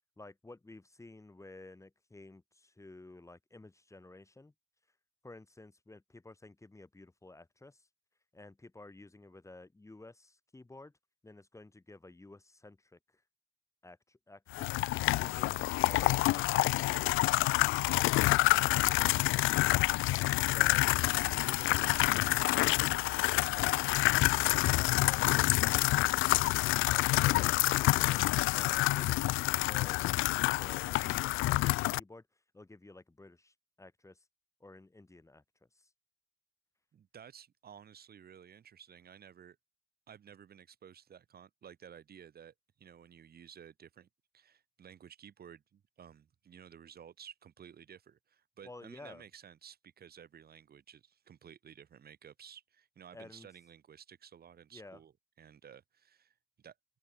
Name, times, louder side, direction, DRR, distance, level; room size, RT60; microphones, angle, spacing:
voice 1, 0.2-4.5 5.2-7.9 8.3-10.9 11.2-13.2 13.8-14.8 15.2-17.2 17.8-18.1 20.5-23.0 25.0-29.3 29.6-32.3 32.5-34.2 34.6-35.4 35.7-35.9 48.6-49.2 53.1-53.5 54.7-55.0, left 2 dB, 15° left, 2.0 m, -53 dB
sound 1, 14.5-32.0, left 19 dB, 90° left, 0.4 m, -28 dB
voice 2, 36.9-39.6 40.1-44.1 44.3-55.1 55.4-56.3 56.6-56.7, right 8 dB, 50° right, 1.5 m, -54 dB
cardioid pair, 90°, 20 cm